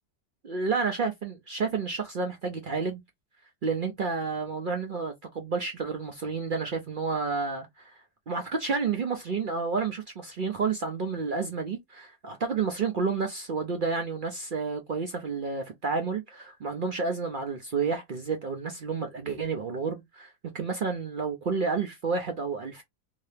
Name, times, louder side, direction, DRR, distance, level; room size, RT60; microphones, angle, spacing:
voice 1, 0.5-3.0 3.6-8.0 8.3-22.8, right 4 dB, 55° right, 0.6 m, -30 dB
2.8 x 2.7 x 3.3 m
omnidirectional pair, 1.5 m